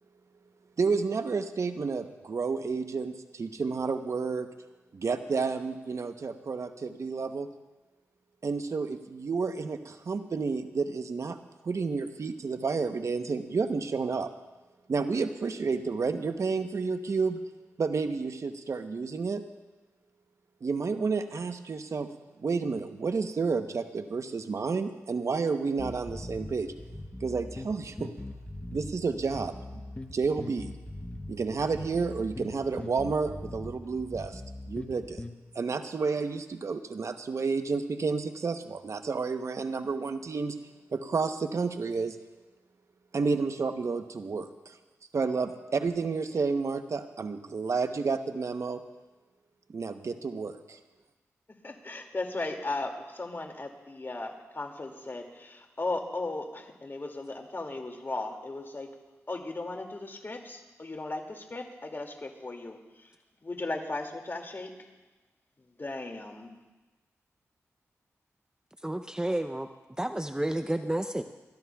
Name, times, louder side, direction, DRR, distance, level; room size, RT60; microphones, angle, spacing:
voice 1, 0.8-4.5 4.9-7.5 8.4-11.4 11.6-14.3 14.9-17.4 17.8-19.4 20.6-22.1 22.4-26.7 27.2-28.1 28.7-29.8 30.1-30.7 31.3-34.4 34.7-35.2 35.5-40.6 40.9-42.2 43.1-44.8 45.1-48.8 49.7-50.8, right 4 dB, 60° right, 8 dB, 0.9 m, -30 dB
sound 1, 25.8-35.4, left 1 dB, 20° left, 1.0 m, -41 dB
voice 2, 51.6-58.9 59.3-63.1 63.4-64.7 65.6-66.5, left 2 dB, 40° left, 3 dB, 2.4 m, -36 dB
voice 3, 68.8-69.7 70.0-71.2, right 1 dB, 15° right, 8 dB, 0.6 m, -30 dB
29.0 x 14.0 x 2.3 m, 1.2 s
cardioid pair, 45°, 6 cm